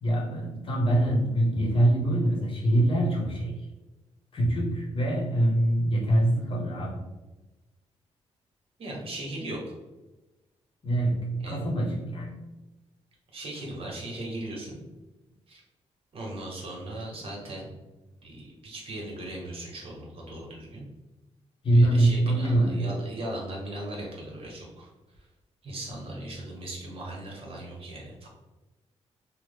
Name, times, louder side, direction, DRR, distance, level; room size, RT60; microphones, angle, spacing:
voice 1, 0.0-3.7 4.3-7.0 10.8-12.4 21.6-22.8, right 1 dB, 50° left, -1 dB, 0.9 m, -24 dB
voice 2, 8.8-9.6 11.4-11.6 13.3-14.8 15.5-15.6 16.1-17.7 18.2-20.9 21.7-24.9 25.2-25.3 25.6-28.3, right 1 dB, 55° right, -3 dB, 1.0 m, -38 dB
3.1 x 2.0 x 3.4 m, 1.1 s
cardioid pair, 100°, 12 cm